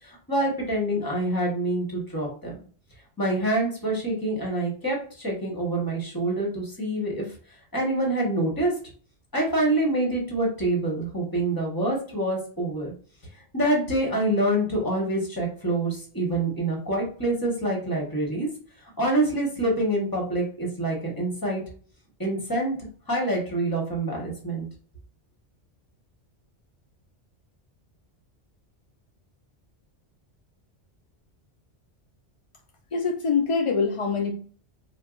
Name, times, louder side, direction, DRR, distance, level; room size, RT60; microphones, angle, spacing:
voice 1, 0.0-2.5 3.2-7.3 7.7-8.7 9.3-12.9 13.5-18.5 19.0-21.6 22.2-22.8 23.1-24.7, right 1 dB, 20° left, -1 dB, 1.1 m, -26 dB
voice 2, 32.9-34.3, left 5 dB, 60° left, 2 dB, 0.3 m, -24 dB
4.4 x 2.2 x 2.4 m, 0.43 s
omnidirectional pair, 1.1 m